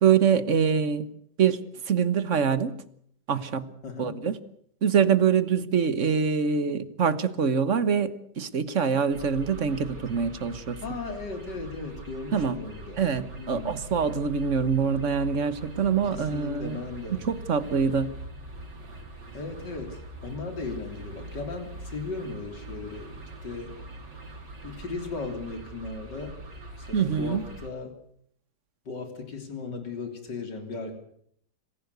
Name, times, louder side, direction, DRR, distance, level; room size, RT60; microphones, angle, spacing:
voice 1, 0.0-1.1 1.4-1.6 1.9-2.7 3.3-3.7 4.0-4.3 4.8-10.8 12.3-12.6 13.0-16.8 17.3-18.1 26.9-27.4, right 7 dB, 45° right, 14 dB, 1.5 m, -24 dB
voice 2, 3.8-4.2 10.8-13.1 13.4-13.8 16.0-17.3 19.3-23.7 24.6-26.4 26.8-27.9 28.9-30.9, left 4 dB, 80° left, 6 dB, 3.9 m, -37 dB
sound 1, 9.1-27.7, right 2 dB, 90° right, 4.2 m, -42 dB
26.0 x 15.5 x 8.2 m, 0.67 s
omnidirectional pair, 1.8 m